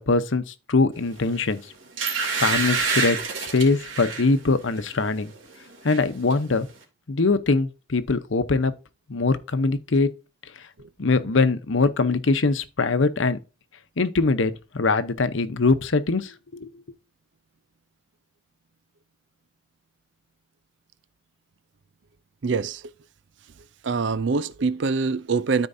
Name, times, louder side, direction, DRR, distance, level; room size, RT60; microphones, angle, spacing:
voice 1, 0.0-1.6 2.4-5.3 5.8-6.7 7.1-8.7 9.1-10.1 11.0-13.4 14.0-16.7, left 3 dB, 80° left, 0.8 m, -22 dB
sound 1, 1.3-1.4 2.0-4.3 4.8-5.0 5.3-6.0 6.3-6.4, right 5 dB, 90° right, 2.6 m, -27 dB
voice 2, 22.4-22.8 23.8-25.7, right 4 dB, 70° right, 0.5 m, -24 dB
13.5 x 4.5 x 2.7 m
head